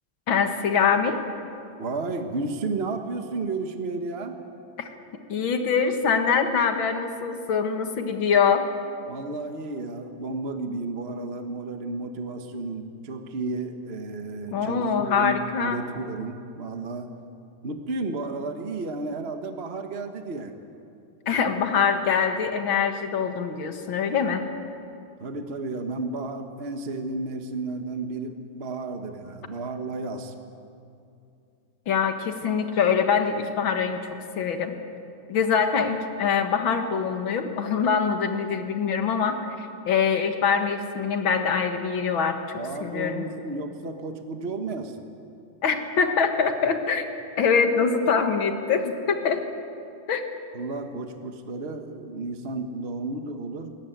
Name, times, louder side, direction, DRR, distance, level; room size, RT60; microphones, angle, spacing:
voice 1, 0.3-1.2 4.8-4.9 5.3-8.7 14.5-15.8 21.3-24.4 31.9-34.0 34.4-34.7 35.3-43.3 45.6-47.0 47.4-49.5 50.1-50.2, left 6 dB, 65° left, 6 dB, 2.3 m, -24 dB
voice 2, 1.8-4.4 9.1-17.1 17.6-20.5 25.2-30.3 42.6-45.1 50.5-53.7, right 3 dB, 35° right, 5 dB, 1.3 m, -32 dB
21.5 x 19.0 x 9.2 m, 2.6 s
omnidirectional pair, 2.4 m